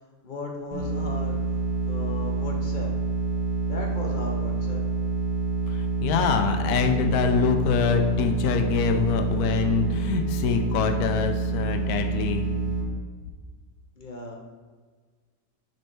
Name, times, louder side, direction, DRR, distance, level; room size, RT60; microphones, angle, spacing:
voice 1, 0.2-1.4 1.8-2.9 3.7-4.8 14.0-14.4, left 2 dB, 40° left, 1 dB, 0.7 m, -36 dB
sound 1, 0.7-12.8, right 3 dB, 25° right, 1.4 m, -27 dB
voice 2, 5.7-12.4, left 6 dB, 70° left, 6 dB, 1.1 m, -25 dB
6.2 x 4.4 x 4.4 m, 1.5 s
omnidirectional pair, 1.8 m